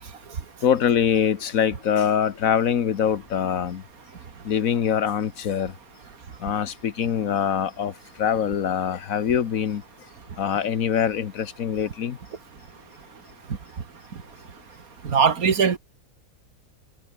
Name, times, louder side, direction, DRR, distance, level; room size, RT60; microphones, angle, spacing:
voice 1, 0.6-3.8 4.4-5.7 6.4-7.9 8.2-9.8 10.4-12.2, left 8 dB, 70° left, 1.5 m, -23 dB
voice 2, 15.0-15.8, right 6 dB, 80° right, 2.2 m, -20 dB
omnidirectional pair, 1.5 m